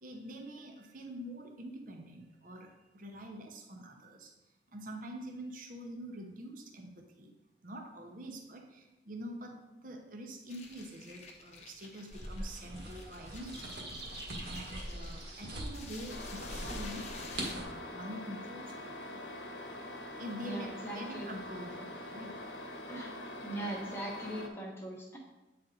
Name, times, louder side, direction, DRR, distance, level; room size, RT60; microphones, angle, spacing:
voice 1, 0.0-4.3 4.7-7.3 7.6-17.1 17.5-19.2 20.2-22.4, right 1 dB, 45° right, 3 dB, 0.8 m, -46 dB
sound 1, 10.5-17.5, left 3 dB, 35° left, 0.7 m, -51 dB
sound 2, 12.1-17.6, right 1 dB, 70° right, 1.5 m, -42 dB
sound 3, 16.1-24.5, left 1 dB, 70° left, 0.9 m, -44 dB
voice 2, 20.4-21.3 22.9-23.1 23.4-25.2, right 1 dB, 15° left, -1 dB, 1.0 m, -40 dB
8.6 x 4.2 x 3.9 m, 1.0 s
head